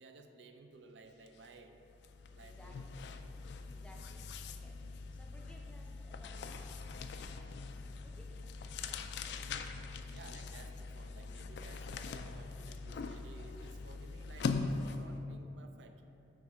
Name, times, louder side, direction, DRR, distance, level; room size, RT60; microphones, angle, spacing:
voice 1, 0.0-1.8 2.3-2.7 8.7-8.9 10.1-16.0, right 3 dB, 70° right, 6 dB, 0.4 m, -56 dB
sound 1, 1.3-1.5 1.8-15.2, left 4 dB, 65° left, 0.3 m, -42 dB
voice 2, 2.4-2.8 3.7-4.2 4.5-7.0 8.0-8.4 8.8-9.4, equal, 5° left, 0 dB, 0.5 m, -60 dB
9.1 x 3.5 x 4.3 m, 2.9 s
head